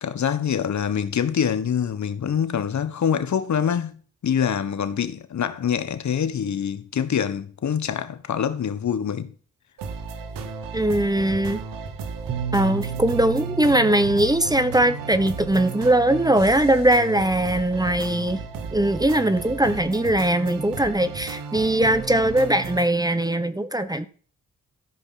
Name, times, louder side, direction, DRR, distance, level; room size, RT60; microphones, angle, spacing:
voice 1, 0.0-3.9 4.2-9.3, left 8 dB, 60° left, 1.4 m, -25 dB
sound 1, 9.8-22.9, right 5 dB, 85° right, 1.5 m, -34 dB
voice 2, 10.7-11.6 12.5-18.4 18.7-24.1, right 1 dB, 10° right, 1.1 m, -20 dB
Bass guitar, 12.3-18.5, right 7 dB, 65° right, 1.5 m, -35 dB
13.5 x 5.3 x 5.9 m
supercardioid pair, 55°, 32 cm